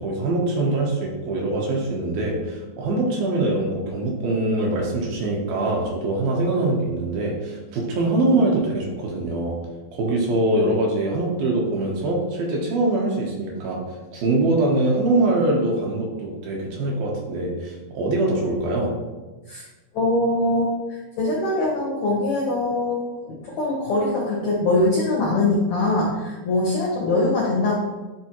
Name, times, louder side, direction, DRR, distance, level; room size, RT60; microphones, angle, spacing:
voice 1, 0.0-9.6 9.9-13.8 14.1-18.9, right 2 dB, 70° right, -1 dB, 2.5 m, -23 dB
voice 2, 19.9-27.7, left 2 dB, 90° left, -3 dB, 1.5 m, -22 dB
10.0 x 3.4 x 3.0 m, 1.2 s
omnidirectional pair, 4.8 m